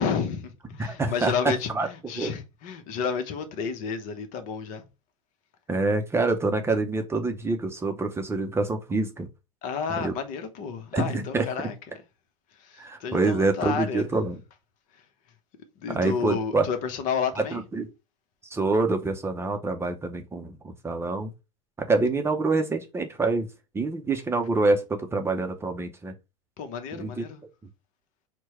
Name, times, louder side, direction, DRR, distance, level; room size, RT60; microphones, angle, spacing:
voice 1, 0.0-4.9 9.6-11.7 12.5-14.1 14.9-15.0 15.8-17.6 26.6-27.4, left 6 dB, 50° left, 0.9 m, -31 dB
voice 2, 0.8-1.3 1.7-1.9 2.2-2.3 5.7-9.3 10.0-10.1 10.9-11.4 12.8-14.4 15.9-16.7 17.5-17.9 18.5-21.3 21.8-23.5 23.7-26.1 27.0-27.2, right 3 dB, 15° right, 0.6 m, -26 dB
4.5 x 2.2 x 4.2 m
hypercardioid pair, 90°, 17 cm